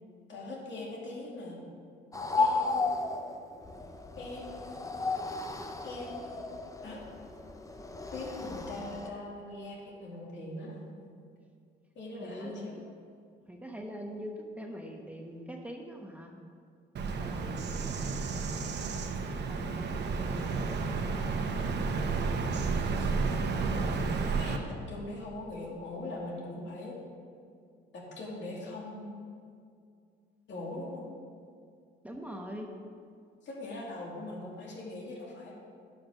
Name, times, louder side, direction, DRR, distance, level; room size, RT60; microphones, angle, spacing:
voice 1, 0.3-1.6 2.4-3.0 4.2-4.8 5.8-6.5 6.8-7.0 8.1-10.8 11.9-12.8 18.2-18.3 22.9-23.1 23.6-24.1 24.3-27.0 27.9-29.1 30.5-31.1 33.4-35.5, left 2 dB, 65° left, -3 dB, 2.6 m, -41 dB
sound 1, 2.1-9.1, left 3 dB, 15° left, 0.7 m, -34 dB
voice 2, 12.2-12.8 13.5-16.3 17.2-18.4 19.5-22.3 32.0-32.7, equal, 5° right, 1 dB, 1.0 m, -43 dB
Bird vocalization bird call bird song, 17.0-24.6, right 4 dB, 60° right, 0.9 m, -31 dB
10.5 x 6.0 x 5.5 m, 2.3 s
cardioid pair, 90°, 20 cm